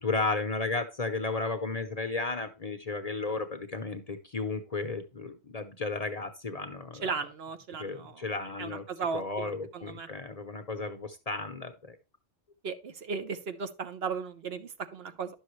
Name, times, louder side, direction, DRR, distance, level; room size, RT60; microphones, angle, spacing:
voice 1, 0.0-7.1 7.8-8.8 9.1-12.0, left 3 dB, 40° left, 0.7 m, -34 dB
voice 2, 7.0-8.3 8.6-10.1 12.6-15.3, right 5 dB, 65° right, 1.0 m, -36 dB
10.5 x 6.4 x 3.1 m
omnidirectional pair, 1.2 m